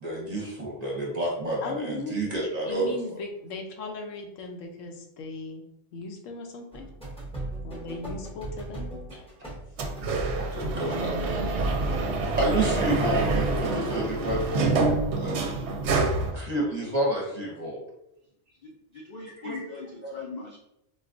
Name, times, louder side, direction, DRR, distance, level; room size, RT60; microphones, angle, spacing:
voice 1, 0.0-2.9 10.4-11.5 12.4-14.4 15.2-15.5 16.3-17.8 19.4-19.6 20.0-20.1, right 1 dB, 40° right, -3 dB, 0.8 m, -29 dB
voice 2, 1.6-5.6 5.9-6.9 7.6-8.9, left 3 dB, 90° left, 3 dB, 1.0 m, -37 dB
sound 1, 6.7-14.5, right 2 dB, 5° left, 0.6 m, -36 dB
sound 2, 9.8-16.3, right 3 dB, 70° right, 0.8 m, -27 dB
voice 3, 18.6-20.6, left 4 dB, 65° left, -2 dB, 0.4 m, -40 dB
4.1 x 2.3 x 2.5 m, 0.85 s
omnidirectional pair, 1.3 m